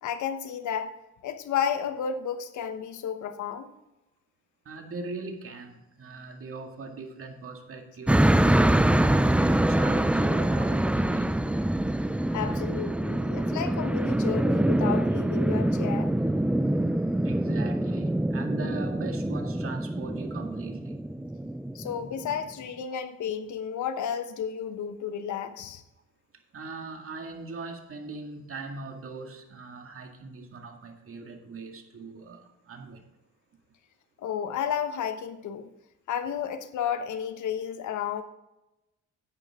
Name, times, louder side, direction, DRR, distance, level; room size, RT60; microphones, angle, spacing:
voice 1, 0.0-0.9 1.2-3.7 12.3-16.1 21.7-25.8 34.2-35.7 36.1-38.2, left 8 dB, 75° left, 9 dB, 1.2 m, -32 dB
voice 2, 4.7-11.6 17.2-21.0 26.5-33.1, right 3 dB, 45° right, 4 dB, 2.1 m, -40 dB
sound 1, 8.1-22.3, right 1 dB, 5° right, 0.5 m, -25 dB
10.5 x 9.0 x 3.6 m, 0.95 s
cardioid pair, 90°, 30 cm